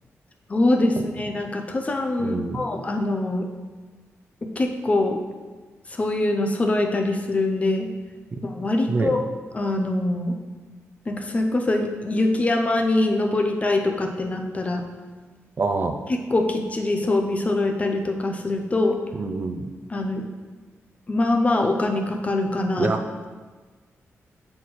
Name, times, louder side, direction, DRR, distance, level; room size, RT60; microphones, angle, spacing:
voice 1, 0.5-3.5 4.4-5.2 5.9-7.9 8.4-9.2 9.5-10.4 11.1-14.8 16.1-19.0 19.9-20.3 21.1-22.9, left 2 dB, 25° left, 3 dB, 0.5 m, -23 dB
voice 2, 2.2-2.6 8.3-8.5 8.9-9.2 15.6-15.9 19.1-19.7 22.8-23.3, right 3 dB, 40° right, 6 dB, 0.4 m, -26 dB
7.5 x 4.2 x 3.1 m, 1.4 s
wide cardioid pair, 135°, 5 cm